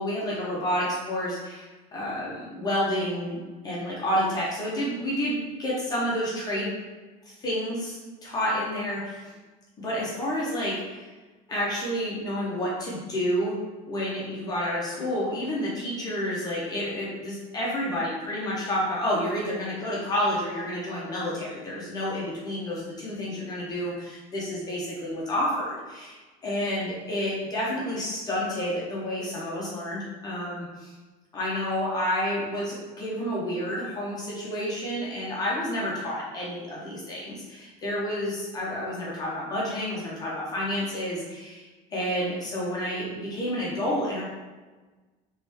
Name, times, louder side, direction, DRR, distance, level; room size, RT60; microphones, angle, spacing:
voice 1, 0.0-3.4 3.6-6.7 7.3-9.3 9.8-11.1 11.5-13.6 13.9-30.9 31.3-44.2, equal, 20° left, -6 dB, 0.7 m, -30 dB
3.0 x 3.0 x 3.3 m, 1.3 s
cardioid pair, 165°, 19 cm